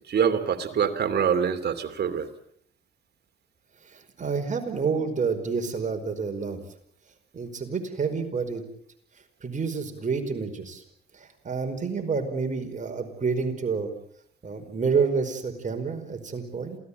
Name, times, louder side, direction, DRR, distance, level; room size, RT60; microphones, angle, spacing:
voice 1, 0.1-2.3, right 7 dB, 55° right, 8 dB, 2.9 m, -25 dB
voice 2, 3.8-6.6 7.3-8.6 9.4-10.8 11.1-13.9 14.4-16.8, right 5 dB, 40° right, 5 dB, 5.1 m, -29 dB
27.5 x 17.5 x 8.6 m, 0.68 s
cardioid pair, 90°, 20 cm